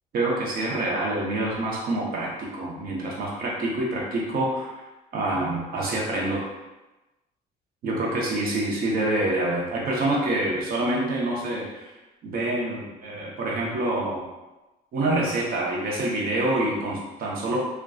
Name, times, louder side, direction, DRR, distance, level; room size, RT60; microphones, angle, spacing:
voice 1, 0.1-4.7 5.1-6.4 7.8-11.9 12.2-14.3 14.9-17.6, right 1 dB, 60° right, -3 dB, 0.7 m, -26 dB
2.5 x 2.2 x 2.3 m, 1.1 s
cardioid pair, 110°, 17 cm